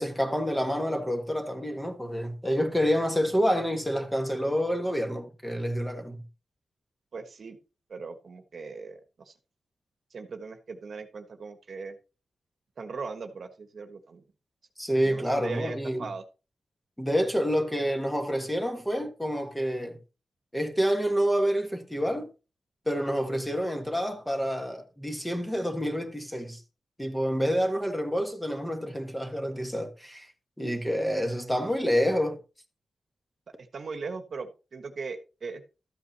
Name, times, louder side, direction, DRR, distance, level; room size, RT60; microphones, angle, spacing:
voice 1, 0.0-6.2 14.8-16.1 17.0-20.0 20.5-22.3 22.9-26.6 27.0-30.3 30.6-32.4, equal, 5° left, 1.5 m, -28 dB
voice 2, 7.1-7.6 7.9-9.0 9.3-9.4 10.1-12.0 12.8-14.2 15.0-16.2 33.6-35.6, right 4 dB, 55° right, 1.3 m, -39 dB
13.5 x 8.5 x 2.9 m
wide cardioid pair, 130°, 0 cm